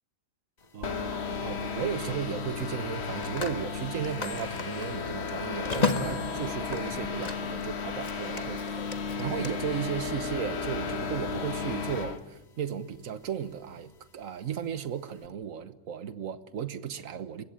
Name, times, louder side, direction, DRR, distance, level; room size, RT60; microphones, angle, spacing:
Telephone, 0.6-0.8 2.8-7.6 7.9-9.5, left 4 dB, 30° left, 1.5 m, -35 dB
voice 1, 0.7-8.9 9.2-17.4, right 8 dB, 70° right, 1.5 m, -35 dB
sound 1, 0.8-12.2, left 5 dB, 50° left, 1.4 m, -34 dB
29.5 x 15.5 x 8.9 m
omnidirectional pair, 1.5 m